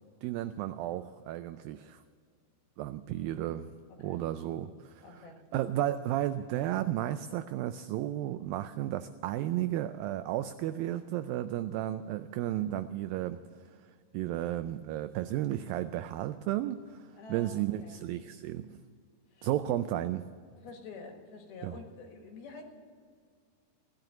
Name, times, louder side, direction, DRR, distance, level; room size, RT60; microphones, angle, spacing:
voice 1, 0.2-2.0 2.8-3.7 4.0-13.4 14.1-18.7 19.4-20.2 21.6-21.8, right 13 dB, 90° right, 11 dB, 2.0 m, -33 dB
voice 2, 3.9-4.2 5.0-5.4 17.1-18.0 19.3-19.8 20.6-22.6, left 4 dB, 70° left, 3 dB, 3.5 m, -48 dB
17.5 x 10.5 x 7.8 m, 2.1 s
omnidirectional pair, 4.6 m